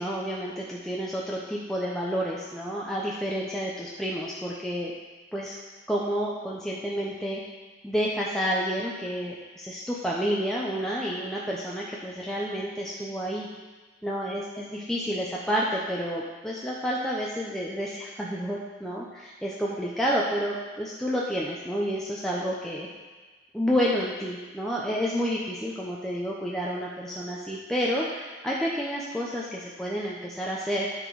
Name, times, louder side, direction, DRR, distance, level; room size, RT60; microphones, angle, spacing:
voice 1, 0.0-4.9 5.3-5.5 5.9-7.4 7.8-13.5 14.0-22.9 23.5-30.9, equal, 5° left, -5 dB, 0.7 m, -30 dB
12.5 x 4.5 x 4.7 m, 1.3 s
head